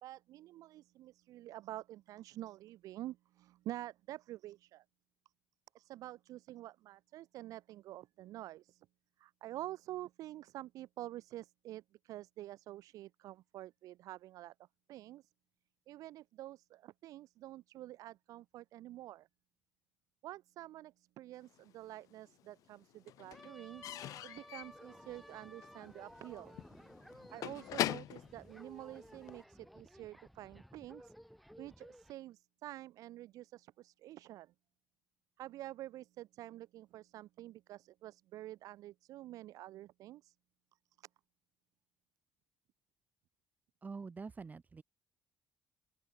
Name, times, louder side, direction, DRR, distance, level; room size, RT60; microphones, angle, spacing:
voice 1, 0.0-4.8 5.7-8.9 9.2-14.5 14.9-15.3 15.9-19.3 20.2-23.8 24.2-26.5 27.1-31.1 31.6-34.5 35.4-40.3 41.0-41.1, right 15 dB, 75° right, 2.8 m, -48 dB
Slam / Squeak / Wood, 21.6-22.4 22.7-29.4, left 14 dB, 75° left, 1.9 m, -42 dB
sound 1, 23.3-32.1, equal, ahead, 5.5 m, -56 dB
voice 2, 43.8-44.8, right 4 dB, 25° right, 1.5 m, -46 dB
open air
cardioid pair, 100°, 6 cm